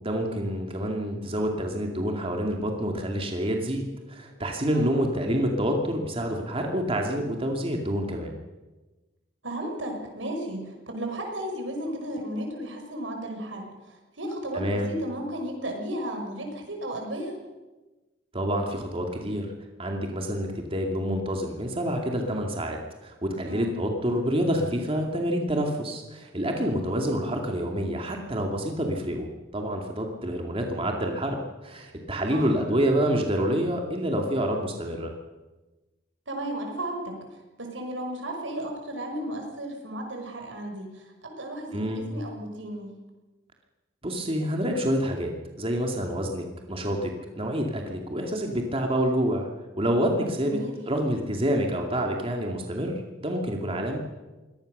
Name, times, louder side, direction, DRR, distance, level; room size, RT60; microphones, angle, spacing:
voice 1, 0.0-8.4 14.5-14.9 18.3-19.5 19.8-29.3 29.5-31.4 31.6-35.1 41.7-42.0 44.0-45.3 45.6-49.5 49.8-50.6 50.9-54.0, equal, 30° right, 2 dB, 2.4 m, -27 dB
voice 2, 9.4-17.4 23.5-23.7 32.3-32.5 36.3-42.9 50.4-50.7, right 1 dB, 90° right, 3 dB, 6.0 m, -34 dB
23.5 x 18.5 x 6.7 m, 1.2 s
head